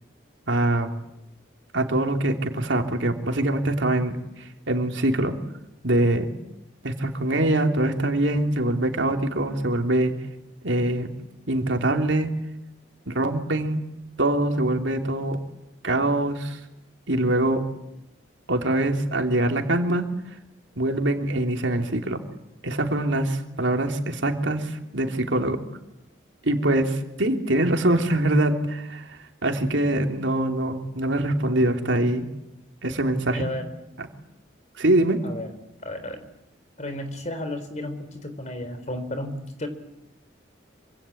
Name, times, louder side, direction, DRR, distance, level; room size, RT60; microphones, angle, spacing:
voice 1, 0.5-0.9 1.7-5.3 5.8-6.3 6.8-10.1 10.6-11.1 11.5-12.3 13.1-13.8 14.2-15.4 15.8-16.6 17.1-17.6 18.5-20.0 20.8-22.2 22.6-25.6 26.4-32.3 32.8-33.5 34.0-34.1 34.8-35.2, right 1 dB, 75° right, 4 dB, 3.2 m, -23 dB
voice 2, 33.3-33.7 35.2-35.5 35.8-36.3 36.8-39.7, left 1 dB, 35° left, 9 dB, 4.0 m, -33 dB
26.0 x 25.5 x 8.7 m, 0.87 s
head